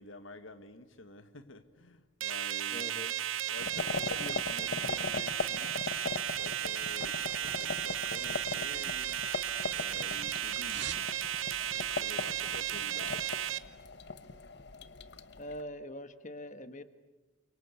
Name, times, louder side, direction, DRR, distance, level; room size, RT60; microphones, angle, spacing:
voice 1, 0.0-2.8 3.4-5.8 6.3-9.2 9.7-11.1 11.7-13.4, left 2 dB, 75° left, 1.7 m, -49 dB
sound 1, 2.2-13.6, right 10 dB, 80° right, 1.0 m, -34 dB
voice 2, 2.7-3.1 15.4-16.8, left 1 dB, 40° left, 1.4 m, -43 dB
sound 2, 3.6-15.6, left 4 dB, 55° left, 1.1 m, -40 dB
sound 3, 8.4-9.6 9.8-11.1 11.4-11.5, right 8 dB, 55° right, 2.9 m, -45 dB
29.5 x 24.0 x 8.4 m
head